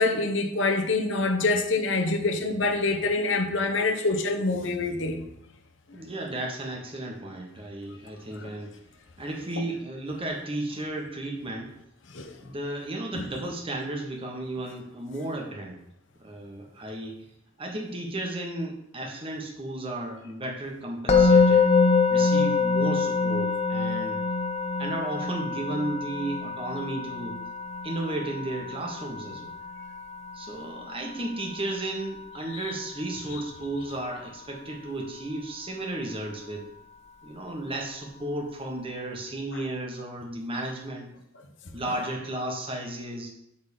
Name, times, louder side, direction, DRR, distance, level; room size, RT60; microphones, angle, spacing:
voice 1, 0.0-5.2 8.4-8.5 12.1-12.3 13.1-13.2, left 3 dB, 70° left, 4 dB, 1.1 m, -25 dB
voice 2, 5.9-8.7 9.2-11.7 12.4-15.8 16.2-17.2 17.6-21.7 22.1-24.2 24.8-27.4 27.8-29.5 30.3-36.7 37.2-41.1 41.7-43.3, right 1 dB, 30° right, 1 dB, 1.5 m, -34 dB
Musical instrument, 21.1-32.2, left 4 dB, 35° left, 0.9 m, -25 dB
8.5 x 4.0 x 6.7 m, 0.79 s
head